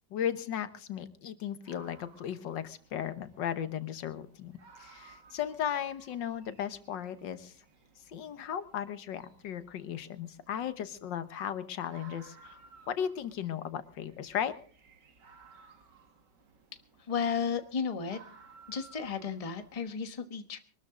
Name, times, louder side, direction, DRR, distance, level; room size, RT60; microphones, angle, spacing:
voice 1, 0.1-4.5 4.8-7.5 8.1-12.6 12.9-14.5, left 9 dB, 85° left, 12 dB, 1.8 m, -36 dB
sound 1, 1.6-20.0, right 5 dB, 75° right, 2.4 m, -59 dB
voice 2, 17.1-18.2 18.7-20.6, left 6 dB, 25° left, 9 dB, 1.1 m, -33 dB
23.5 x 13.0 x 3.7 m, 0.41 s
omnidirectional pair, 1.9 m